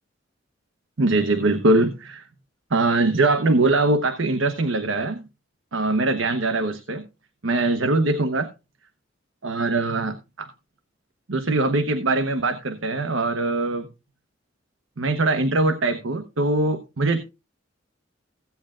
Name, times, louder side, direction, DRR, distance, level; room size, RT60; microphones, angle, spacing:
voice 1, 1.0-2.2 2.7-5.2 5.7-7.0 7.4-8.5 9.4-10.5 11.3-13.9 15.0-17.2, right 2 dB, 90° right, 1.0 m, -22 dB
16.0 x 8.8 x 2.5 m
head